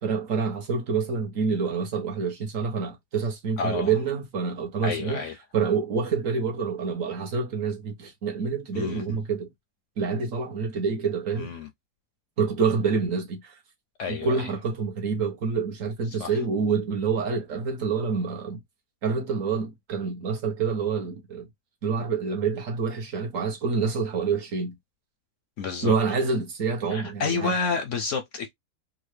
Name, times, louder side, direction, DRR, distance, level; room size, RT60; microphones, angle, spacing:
voice 1, 0.0-5.2 5.5-9.5 10.0-11.5 12.4-13.6 14.1-18.6 19.0-21.5 21.8-24.8 25.8-27.5, right 5 dB, 60° right, 1.2 m, -27 dB
voice 2, 3.6-3.9 4.8-5.3 8.7-9.0 11.4-11.7 14.0-14.5 16.1-16.3 25.6-25.9 26.9-28.5, left 5 dB, 65° left, 0.8 m, -29 dB
3.6 x 2.1 x 3.2 m
omnidirectional pair, 1.7 m